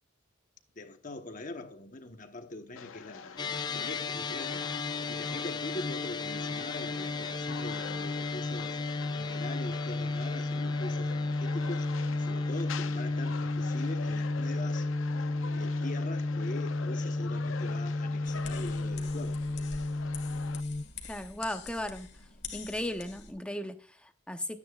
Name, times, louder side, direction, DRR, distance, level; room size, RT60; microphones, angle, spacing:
voice 1, 0.7-4.7 5.1-8.8 9.2-14.9 15.5-19.4, left 2 dB, 40° left, 1.1 m, -43 dB
sound 1, 2.8-20.6, left 6 dB, 80° left, 0.6 m, -45 dB
sound 2, 3.4-20.8, left 2 dB, 20° left, 0.3 m, -33 dB
sound 3, 18.2-23.3, left 5 dB, 55° left, 1.8 m, -46 dB
voice 2, 21.1-22.1 22.5-24.6, left 1 dB, 5° left, 0.8 m, -36 dB
12.5 x 9.6 x 2.4 m
head